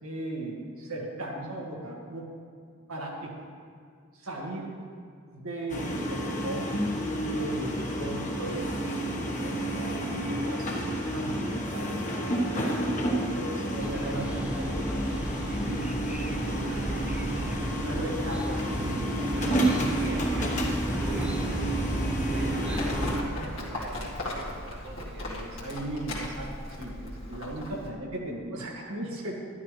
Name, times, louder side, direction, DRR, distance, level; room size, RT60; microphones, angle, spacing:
voice 1, 0.0-2.3 2.9-3.4 4.1-4.8 5.3-6.7 7.2-9.0 9.3-10.9 11.1-12.1 12.8-15.0 15.5-17.0 17.8-19.2 25.3-26.5 26.8-29.3, right 1 dB, 90° right, -2 dB, 1.9 m, -37 dB
sound 1, 5.7-23.2, right 1 dB, 35° left, 1.3 m, -30 dB
voice 2, 12.5-13.0 19.3-25.3, right 3 dB, 55° right, 1 dB, 0.6 m, -43 dB
sound 2, 13.8-23.2, equal, 5° right, 0.4 m, -33 dB
Livestock farm animals working animals, 22.7-27.9, left 1 dB, 65° left, 2.1 m, -37 dB
12.0 x 11.5 x 3.3 m, 2.2 s
head